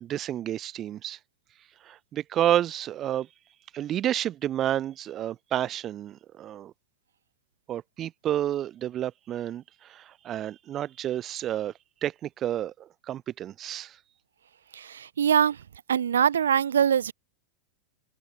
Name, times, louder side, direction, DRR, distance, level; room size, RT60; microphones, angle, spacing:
voice 1, 0.0-1.2 1.8-3.3 3.7-6.7 7.7-11.7 12.0-14.0, right 11 dB, 30° right, 0.4 m, -30 dB
voice 2, 14.7-15.6 15.9-17.1, right 8 dB, 65° right, 1.2 m, -23 dB
figure-of-eight pair, 90°, 0 cm